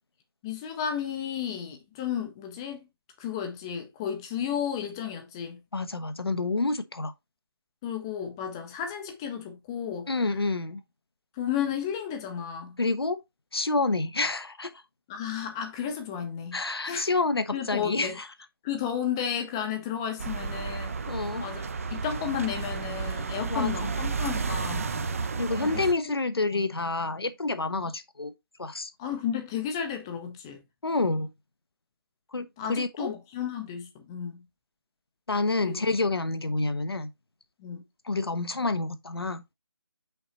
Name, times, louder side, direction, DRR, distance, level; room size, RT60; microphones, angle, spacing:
voice 1, 0.4-2.8 3.2-5.6 7.8-10.1 11.4-12.8 15.1-17.1 17.5-18.2 18.6-24.9 25.6-25.8 26.5-26.7 29.0-30.6 32.6-34.4 35.6-35.8 37.6-37.8, left 8 dB, 10° left, 0.5 m, -33 dB
voice 2, 5.7-7.1 10.1-10.8 12.8-13.2 13.5-14.7 16.5-18.3 21.1-21.5 23.5-23.9 25.4-28.3 28.6-28.9 30.8-31.3 32.3-33.1 35.3-37.1 38.1-39.4, left 3 dB, 80° left, 1.0 m, -28 dB
sound 1, 20.2-25.9, right 5 dB, 35° right, 0.6 m, -32 dB
5.8 x 3.9 x 4.2 m
figure-of-eight pair, 160°, 13 cm